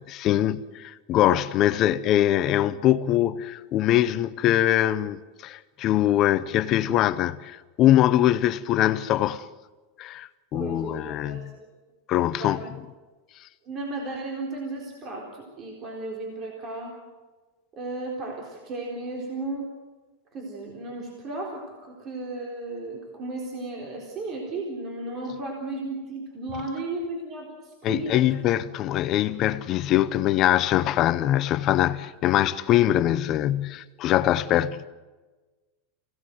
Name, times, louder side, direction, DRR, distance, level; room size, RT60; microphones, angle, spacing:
voice 1, 0.0-9.4 10.0-11.5 12.1-12.6 27.8-34.9, left 13 dB, 35° left, 0.7 m, -23 dB
voice 2, 10.5-11.4 12.4-12.7 13.6-17.0 17.7-19.7 20.3-28.3, right 2 dB, 30° right, 3.9 m, -34 dB
26.5 x 17.5 x 7.9 m
supercardioid pair, 160°, 0 cm